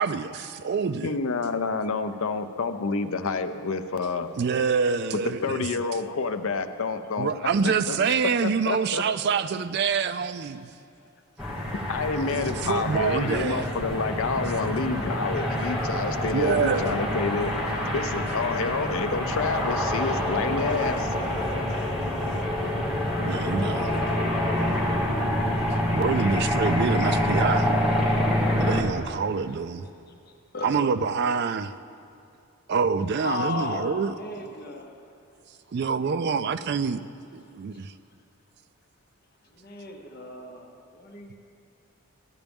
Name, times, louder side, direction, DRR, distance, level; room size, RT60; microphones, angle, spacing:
voice 1, 0.0-1.2 4.4-5.7 7.2-10.7 12.2-13.7 16.3-17.0 23.2-23.9 25.9-27.7 28.6-29.8 30.6-31.7 32.7-34.5 35.7-37.0 37.3-37.9, right 5 dB, 45° right, 13 dB, 0.3 m, -26 dB
voice 2, 1.0-4.3 5.2-7.3 7.9-8.0 8.2-8.3 8.6-9.0 11.4-11.5 11.9-17.6 17.9-21.1, left 4 dB, 65° left, 9 dB, 0.5 m, -28 dB
sound 1, 11.4-28.8, left 1 dB, ahead, 1.3 m, -26 dB
voice 3, 15.7-16.1 22.4-22.7 30.1-30.2 30.5-30.9 33.2-35.0 39.5-41.3, left 3 dB, 45° left, 2 dB, 0.9 m, -36 dB
14.5 x 11.5 x 3.5 m, 2.5 s
head